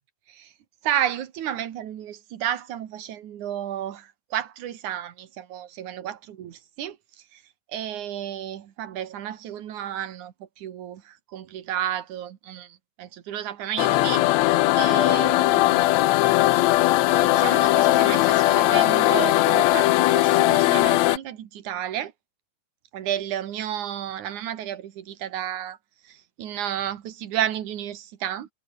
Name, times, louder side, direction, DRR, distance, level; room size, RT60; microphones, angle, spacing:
voice 1, 0.8-7.0 7.3-7.4 7.7-14.3 14.7-15.9 17.1-22.1 22.9-25.8 26.0-28.5, right 11 dB, 75° right, 3.0 m, -32 dB
sound 1, 13.8-21.2, left 17 dB, 75° left, 1.8 m, -19 dB
omnidirectional pair, 3.5 m